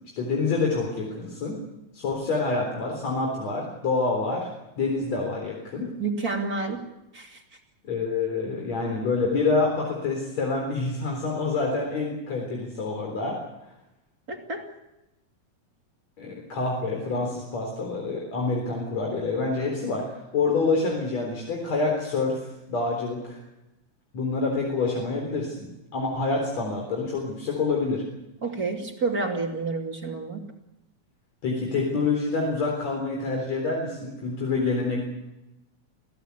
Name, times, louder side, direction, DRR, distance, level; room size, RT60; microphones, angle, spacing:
voice 1, 0.2-1.6 1.9-4.5 4.8-5.9 7.8-13.4 16.2-22.4 22.7-23.4 24.1-25.7 25.9-28.0 31.4-35.0, left 3 dB, 65° left, 0 dB, 5.1 m, -27 dB
voice 2, 6.0-6.8 7.1-7.4 14.3-14.7 28.4-30.4, right 4 dB, 30° right, 2 dB, 3.0 m, -29 dB
27.5 x 16.5 x 8.4 m, 0.93 s
omnidirectional pair, 3.4 m